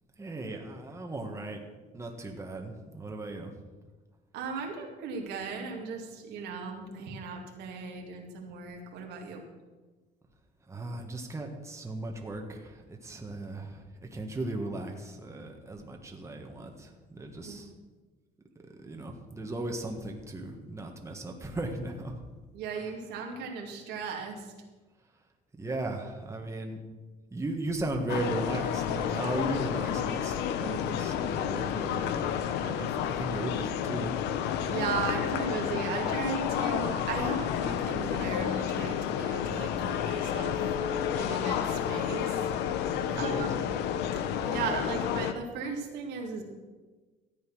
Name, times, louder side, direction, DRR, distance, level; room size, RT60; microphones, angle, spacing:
voice 1, 0.2-1.6 1.9-3.5 10.7-17.7 18.7-22.2 25.6-26.8 27.3-32.3 32.6-34.1 42.9-43.6, right 2 dB, 15° right, 2 dB, 1.7 m, -37 dB
voice 2, 4.3-9.4 17.4-17.6 22.5-24.5 34.7-40.7 41.1-42.5 43.2-43.7 44.4-46.4, right 5 dB, 85° right, 1 dB, 2.4 m, -36 dB
sound 1, 28.1-45.3, left 9 dB, 90° left, 0.8 m, -30 dB
13.5 x 8.5 x 6.3 m, 1.3 s
cardioid pair, 110°, 17 cm